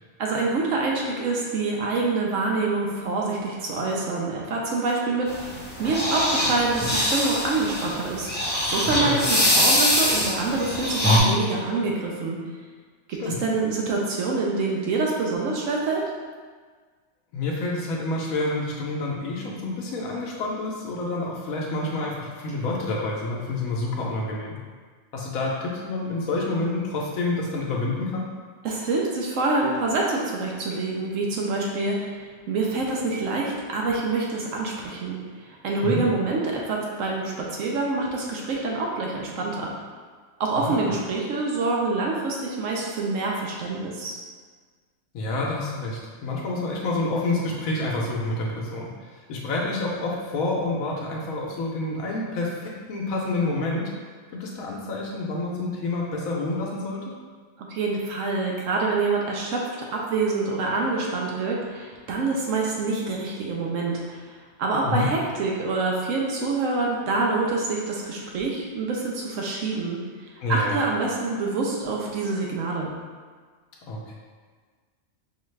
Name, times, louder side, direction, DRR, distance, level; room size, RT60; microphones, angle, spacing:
voice 1, 0.2-8.3 8.6-12.4 13.1-16.0 28.6-39.7 40.4-44.2 57.6-59.6 59.9-70.0 70.5-72.9, right 3 dB, 75° right, -2 dB, 0.9 m, -26 dB
sound 1, 5.3-11.2, left 1 dB, 10° left, 0.5 m, -23 dB
voice 2, 17.3-24.6 25.1-28.3 35.8-36.0 40.6-40.9 45.1-53.9 54.3-57.2 64.8-65.1 70.4-70.8 73.8-74.1, left 2 dB, 85° left, -3 dB, 1.0 m, -28 dB
5.4 x 2.4 x 3.1 m, 1.5 s
omnidirectional pair, 1.4 m